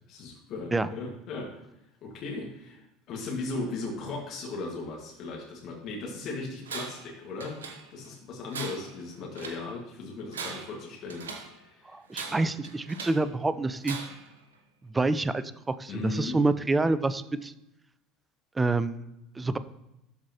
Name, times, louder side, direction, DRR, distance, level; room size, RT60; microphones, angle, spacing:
voice 1, 0.1-1.6 2.0-7.6 7.9-12.0 15.9-16.4, left 3 dB, 50° left, -1 dB, 1.8 m, -37 dB
Tools, 6.7-7.1 7.4-8.1 8.5-9.7 10.2-11.6 12.1-13.3 13.8-14.3, right 5 dB, 85° right, 0.9 m, -40 dB
voice 2, 11.9-14.0 14.9-17.5 18.6-19.0 19.4-19.6, right 3 dB, 15° right, 14 dB, 0.5 m, -27 dB
13.0 x 4.7 x 2.9 m, 0.88 s
hypercardioid pair, 70°, 0 cm